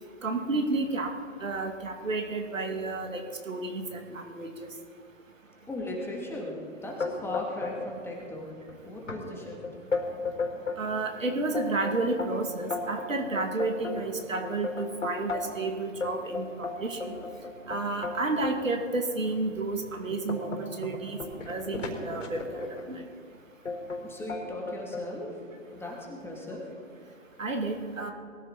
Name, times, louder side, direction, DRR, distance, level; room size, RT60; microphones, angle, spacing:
voice 1, 0.2-1.1 1.4-4.7 10.8-17.2 17.7-23.0 27.4-28.1, right 3 dB, 80° right, 3 dB, 2.3 m, -31 dB
voice 2, 5.7-8.5 8.8-9.6 24.0-25.4 25.7-26.7, left 1 dB, 5° left, -2 dB, 2.6 m, -37 dB
sound 1, 7.0-7.9 8.2-8.7 9.1-9.2 9.6-10.8 11.3-15.6 16.0-18.6 19.2-19.3 19.8-22.9 23.7-24.0 24.3-25.1, left 4 dB, 70° left, 4.3 m, -34 dB
22.0 x 14.5 x 4.1 m, 2.2 s
figure-of-eight pair, 125°, 39 cm